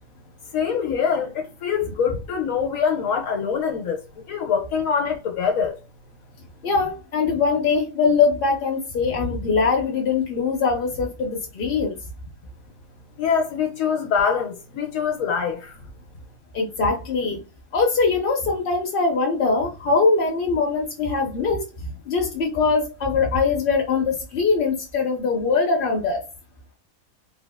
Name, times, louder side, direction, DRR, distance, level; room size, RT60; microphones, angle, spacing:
voice 1, 0.5-4.0 4.3-5.8 13.2-15.8, left 6 dB, 80° left, 1.0 m, -24 dB
voice 2, 6.6-12.0 16.5-17.4 17.7-26.2, left 4 dB, 60° left, 0.6 m, -22 dB
3.5 x 2.3 x 2.2 m
omnidirectional pair, 1.4 m